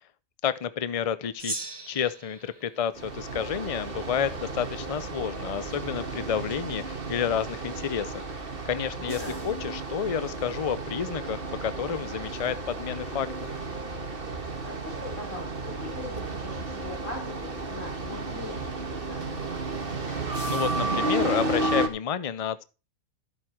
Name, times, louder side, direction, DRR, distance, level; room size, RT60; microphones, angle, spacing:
voice 1, 0.4-8.2 8.6-13.5 20.1-22.6, left 8 dB, 35° left, 0.6 m, -30 dB
Gong, 1.4-4.0, right 2 dB, 15° right, 1.5 m, -40 dB
sound 1, 3.0-21.9, right 2 dB, 40° right, 1.9 m, -33 dB
voice 2, 8.9-9.5 14.6-19.6, left 1 dB, 60° left, 5.1 m, -40 dB
13.5 x 8.2 x 4.5 m
omnidirectional pair, 1.5 m